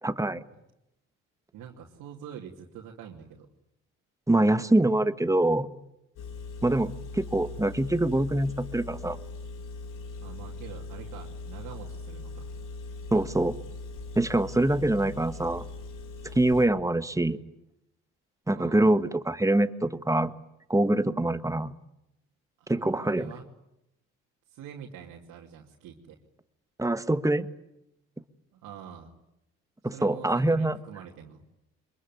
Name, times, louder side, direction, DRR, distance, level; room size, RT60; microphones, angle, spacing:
voice 1, 0.0-0.4 4.3-5.7 6.6-9.2 13.1-13.5 14.1-15.6 16.3-17.4 18.5-20.3 20.7-21.7 22.7-23.3 26.8-27.5 29.8-30.8, right 1 dB, 10° right, 12 dB, 1.4 m, -24 dB
voice 2, 1.5-3.5 10.2-12.5 14.7-15.2 18.5-18.9 22.6-23.5 24.5-26.2 28.5-29.1 29.9-31.4, right 8 dB, 70° right, -2 dB, 2.8 m, -45 dB
Engine, 6.2-16.7, left 3 dB, 75° left, 3.0 m, -40 dB
24.0 x 22.0 x 9.5 m, 0.86 s
supercardioid pair, 65°, 33 cm